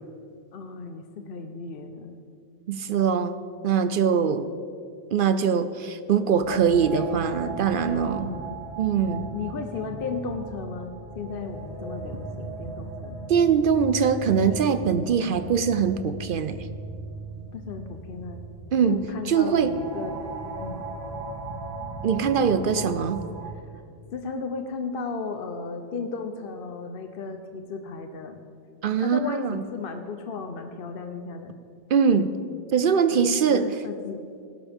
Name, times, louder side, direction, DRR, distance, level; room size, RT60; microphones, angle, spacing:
voice 1, 0.5-2.2 6.5-6.6 6.9-7.0 7.9-8.6 9.3-13.2 17.5-18.4 18.8-20.1 20.6-20.8 22.6-23.0 23.4-23.5 24.1-28.4 29.0-31.6 33.1-34.2, left 4 dB, 55° left, 6 dB, 0.9 m, -35 dB
voice 2, 2.7-3.3 3.6-4.5 5.1-8.3 8.8-9.3 13.3-16.6 18.7-19.0 19.3-19.7 22.0-23.2 28.8-29.6 31.9-32.3 32.7-33.6, right 7 dB, 60° right, 12 dB, 0.6 m, -22 dB
sound 1, 6.3-23.5, right 3 dB, 30° right, 2.2 m, -37 dB
17.5 x 11.5 x 3.5 m, 2.3 s
omnidirectional pair, 1.3 m